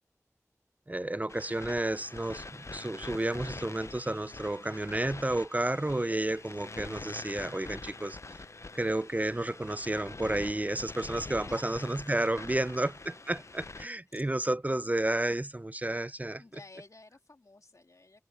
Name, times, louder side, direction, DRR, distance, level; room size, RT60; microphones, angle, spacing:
voice 1, 0.9-8.2 8.7-16.4, right 1 dB, 30° right, 0.4 m, -31 dB
sound 1, 1.3-13.9, left 3 dB, 60° left, 0.5 m, -45 dB
voice 2, 14.1-14.5 16.4-18.2, left 2 dB, 75° left, 2.4 m, -53 dB
wide cardioid pair, 40°, 6 cm